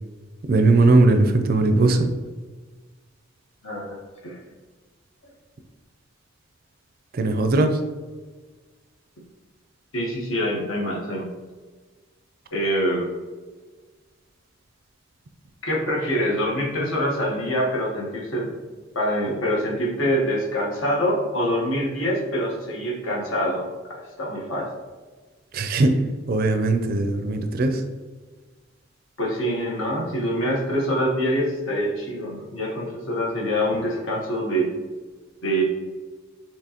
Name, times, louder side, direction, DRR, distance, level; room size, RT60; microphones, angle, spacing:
voice 1, 0.5-2.1 7.1-7.8 25.5-26.0 26.3-27.8, right 2 dB, 45° right, 7 dB, 0.4 m, -19 dB
voice 2, 3.6-4.4 9.9-11.3 12.5-13.1 15.6-18.5 18.9-24.7 29.2-34.7 35.4-35.6, equal, 75° left, -3 dB, 1.1 m, -25 dB
6.1 x 3.0 x 2.9 m, 1.3 s
head